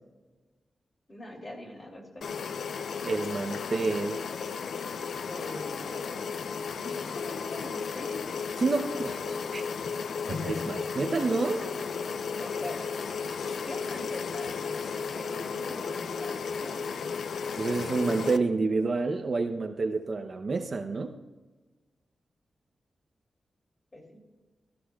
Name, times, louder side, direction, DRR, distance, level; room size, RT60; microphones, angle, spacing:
voice 1, 1.1-2.2 5.3-6.4 6.7-8.2 11.5-11.7 12.4-12.9 13.7-16.9 17.5-18.1 23.9-24.5, left 1 dB, 25° left, 0 dB, 2.7 m, -43 dB
sound 1, 2.2-18.4, left 5 dB, 85° left, 0.5 m, -34 dB
voice 2, 3.0-4.2 8.6-9.6 10.3-11.6 17.6-21.1, right 3 dB, 40° right, 6 dB, 0.7 m, -29 dB
17.5 x 13.0 x 2.3 m, 1.2 s
wide cardioid pair, 160°, 0 cm